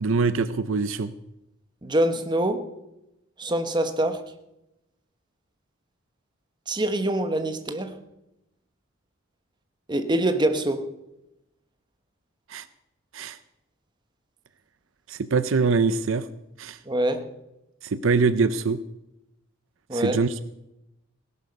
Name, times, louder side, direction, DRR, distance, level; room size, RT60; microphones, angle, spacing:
voice 1, 0.0-1.1 12.5-12.7 13.1-13.4 15.1-16.3 16.6-16.8 17.8-18.8 19.9-20.5, right 4 dB, 65° right, 13 dB, 0.6 m, -23 dB
voice 2, 1.8-2.7 3.4-4.2 6.7-8.0 9.9-10.8 16.9-17.3 19.9-20.2, right 1 dB, 20° right, 7 dB, 1.2 m, -24 dB
17.0 x 11.5 x 5.4 m, 0.89 s
head